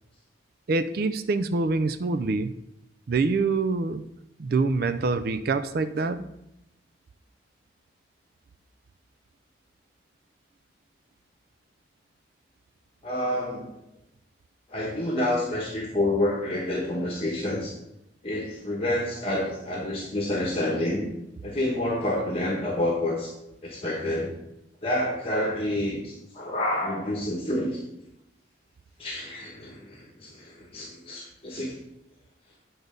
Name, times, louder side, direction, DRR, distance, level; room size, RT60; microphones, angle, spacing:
voice 1, 0.7-2.5 3.1-4.0 4.4-6.3, right 3 dB, 50° right, 11 dB, 0.4 m, -25 dB
voice 2, 13.0-13.7 14.7-17.7 18.2-21.0 21.4-23.3 23.6-24.3 24.8-27.8 29.0-31.7, left 1 dB, 30° left, -2 dB, 1.1 m, -28 dB
8.0 x 4.0 x 5.1 m, 0.86 s
head